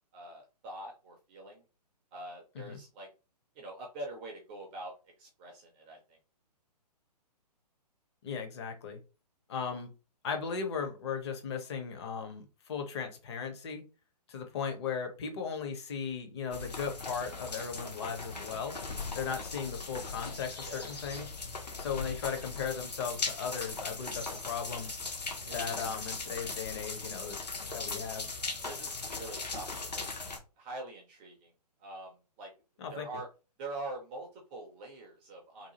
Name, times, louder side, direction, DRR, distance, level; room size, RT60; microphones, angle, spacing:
voice 1, 0.1-1.6 2.1-3.1 3.6-6.2 20.6-21.1 23.5-23.6 25.5-25.9 28.6-30.1 30.6-31.5 31.8-32.5 32.9-33.3 33.6-35.7, right 2 dB, 15° right, 0 dB, 0.4 m, -44 dB
voice 2, 8.2-9.0 9.5-9.9 10.2-13.8 14.3-18.8 19.1-21.3 21.8-24.9 25.5-27.4 27.7-28.3 32.8-33.1, left 6 dB, 40° left, 4 dB, 0.7 m, -37 dB
sound 1, 16.5-30.4, left 4 dB, 75° left, 0.9 m, -39 dB
2.7 x 2.3 x 2.8 m, 0.32 s
figure-of-eight pair, 130°, 21 cm